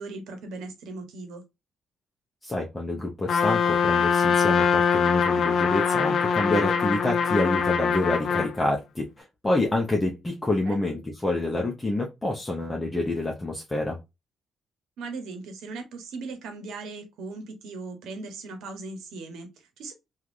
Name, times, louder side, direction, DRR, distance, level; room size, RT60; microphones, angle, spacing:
voice 1, 0.0-1.4 10.5-10.8 15.0-19.9, right 3 dB, 85° right, 0.9 m, -38 dB
voice 2, 2.4-14.0, left 2 dB, 15° left, 0.6 m, -27 dB
Trumpet, 3.3-8.5, left 6 dB, 60° left, 0.6 m, -23 dB
3.1 x 2.4 x 2.5 m
cardioid pair, 90°, 0 cm